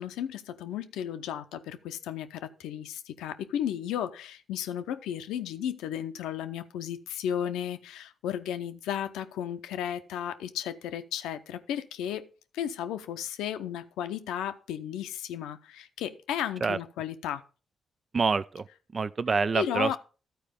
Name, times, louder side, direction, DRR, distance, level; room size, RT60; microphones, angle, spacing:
voice 1, 0.0-12.3 12.5-17.4 19.5-20.0, left 10 dB, 85° left, 0.6 m, -34 dB
voice 2, 18.1-18.7 18.9-20.0, right 4 dB, 45° right, 0.4 m, -26 dB
13.0 x 4.5 x 5.1 m
supercardioid pair, 45°, 0 cm